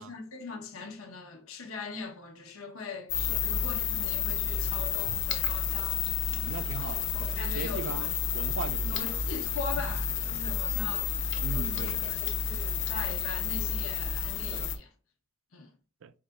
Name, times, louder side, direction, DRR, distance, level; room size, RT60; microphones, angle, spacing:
voice 1, 0.0-3.1 3.4-6.0 6.9-8.1 8.9-11.2 11.5-14.9 15.5-15.7, left 4 dB, 75° left, 1.1 m, -41 dB
sound 1, 3.1-14.8, left 7 dB, 60° left, 0.7 m, -30 dB
voice 2, 6.3-9.2 11.4-12.2 14.5-14.7 16.0-16.1, right 6 dB, 65° right, 0.4 m, -39 dB
4.8 x 3.8 x 2.4 m
head